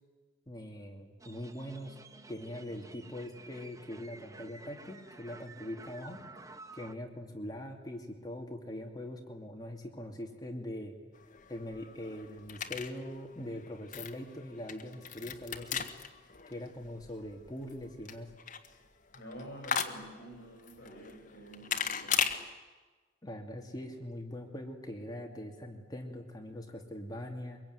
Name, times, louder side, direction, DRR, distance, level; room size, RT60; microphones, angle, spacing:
voice 1, 0.5-1.9 2.3-6.2 6.7-11.0 11.5-15.8 16.5-18.3 23.2-27.6, left 1 dB, 20° left, 2 dB, 2.5 m, -42 dB
sound 1, 1.2-6.9, right 3 dB, 15° right, 0.9 m, -52 dB
sound 2, 11.1-22.4, left 7 dB, 45° left, 1.6 m, -38 dB
voice 2, 19.1-22.4, right 1 dB, 60° left, -1 dB, 6.8 m, -48 dB
24.0 x 22.5 x 9.6 m, 1.3 s
head